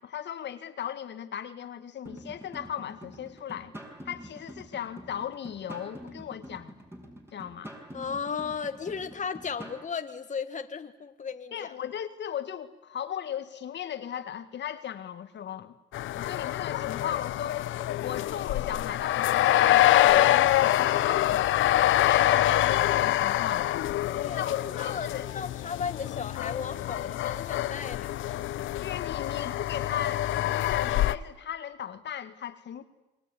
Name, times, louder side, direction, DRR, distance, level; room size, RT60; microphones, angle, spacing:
voice 1, 0.0-3.7 4.0-6.8 7.3-7.7 11.5-15.8 16.1-17.7 18.0-23.7 24.4-25.2 28.8-32.8, left 9 dB, 65° left, 9 dB, 1.8 m, -37 dB
sound 1, 2.1-9.9, equal, 10° right, 6.2 m, -46 dB
voice 2, 7.9-11.7 20.9-21.3 24.0-28.1, left 6 dB, 40° left, 8 dB, 1.8 m, -35 dB
sound 2, 15.9-31.2, left 13 dB, 80° left, 0.9 m, -25 dB
28.0 x 21.5 x 9.8 m, 0.98 s
cardioid pair, 90°, 20 cm